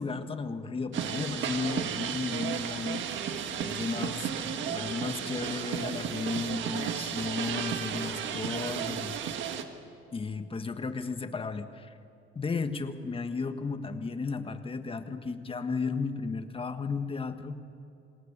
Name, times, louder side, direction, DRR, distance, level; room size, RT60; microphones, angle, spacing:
voice 1, 0.0-9.2 10.1-12.0 12.3-17.6, left 4 dB, 25° left, 8 dB, 1.5 m, -34 dB
sound 1, 0.9-9.6, right 8 dB, 70° right, 1.6 m, -33 dB
27.0 x 17.5 x 6.8 m, 2.7 s
cardioid pair, 100°, 20 cm